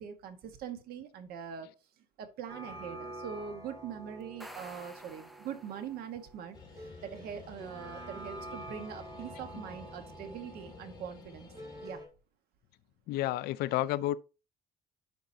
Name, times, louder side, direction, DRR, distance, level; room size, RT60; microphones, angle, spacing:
voice 1, 0.0-1.7 2.2-11.5 11.8-12.0, right 8 dB, 70° right, 1.4 m, -43 dB
sound 1, 2.5-12.1, right 1 dB, 20° right, 2.6 m, -48 dB
sound 2, 4.2-6.2, equal, ahead, 0.5 m, -51 dB
sound 3, 6.5-11.9, left 4 dB, 25° left, 2.1 m, -51 dB
voice 2, 13.1-14.2, left 15 dB, 75° left, 0.4 m, -30 dB
10.0 x 4.8 x 2.8 m
cardioid pair, 160°, 17 cm